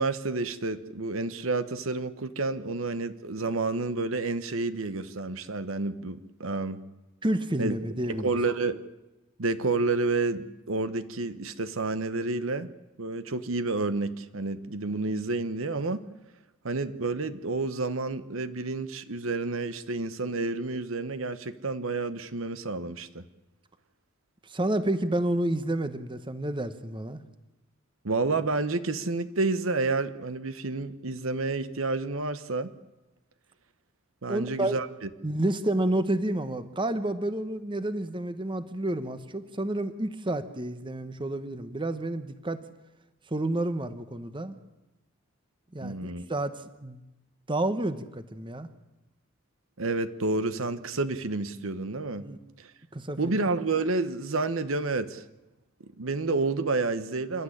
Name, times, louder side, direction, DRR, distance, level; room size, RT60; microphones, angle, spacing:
voice 1, 0.0-6.8 7.6-7.7 8.1-8.8 9.4-12.7 13.0-16.0 16.6-23.2 28.0-32.7 34.2-35.1 45.8-46.2 49.8-52.2 52.6-52.7 53.2-55.2 56.0-57.4, right 3 dB, 70° right, 12 dB, 1.0 m, -29 dB
voice 2, 7.2-8.3 24.5-27.2 34.3-34.8 35.2-42.6 43.3-44.6 45.7-47.0 47.5-48.7 52.2-52.4 52.9-53.4, right 1 dB, 25° right, 11 dB, 1.1 m, -30 dB
28.0 x 12.5 x 10.0 m, 1.0 s
head